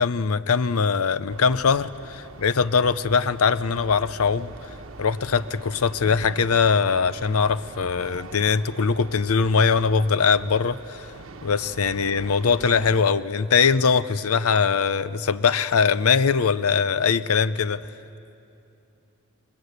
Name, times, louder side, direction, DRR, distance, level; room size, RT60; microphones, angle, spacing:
voice 1, 0.0-4.5 5.0-11.1 11.4-17.8, left 5 dB, 85° left, 15 dB, 0.6 m, -21 dB
sound 1, 1.3-13.0, right 3 dB, 70° right, 1.1 m, -43 dB
29.0 x 20.5 x 8.1 m, 2.8 s
head